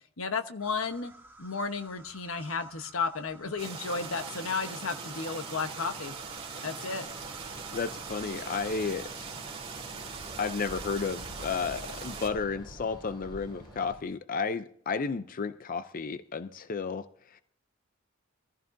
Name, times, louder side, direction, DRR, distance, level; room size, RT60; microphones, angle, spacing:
voice 1, 0.2-1.1 1.4-6.1 6.6-7.0, left 4 dB, 80° left, 8 dB, 1.1 m, -33 dB
sound 1, 0.6-8.7, right 1 dB, 10° right, 1.7 m, -53 dB
sound 2, 3.6-12.3, right 5 dB, 30° right, 2.4 m, -41 dB
sound 3, 7.0-13.9, equal, 20° left, 3.7 m, -48 dB
voice 2, 7.7-9.2 10.4-17.4, left 5 dB, 40° left, 12 dB, 0.5 m, -33 dB
24.0 x 14.5 x 2.6 m, 0.65 s
head